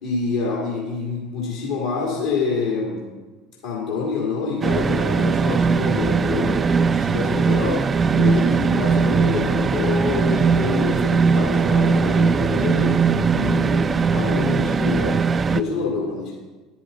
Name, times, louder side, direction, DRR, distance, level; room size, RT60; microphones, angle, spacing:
voice 1, 0.0-3.0 3.6-16.4, left 4 dB, 65° left, -4 dB, 2.2 m, -27 dB
sound 1, 4.6-15.6, right 5 dB, 30° right, 0.4 m, -20 dB
10.5 x 10.0 x 3.9 m, 1.2 s
figure-of-eight pair, 65°, 0 cm